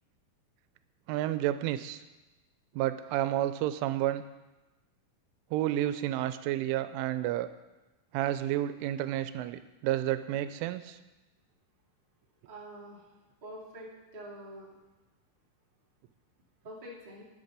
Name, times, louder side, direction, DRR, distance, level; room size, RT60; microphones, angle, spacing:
voice 1, 1.1-2.0 2.8-4.2 5.5-7.5 8.1-11.0, right 13 dB, 85° right, 12 dB, 3.0 m, -30 dB
voice 2, 12.4-13.0 13.4-14.7 16.6-17.2, right 1 dB, 15° right, -6 dB, 1.5 m, -46 dB
11.0 x 7.5 x 6.6 m, 1.1 s
omnidirectional pair, 5.5 m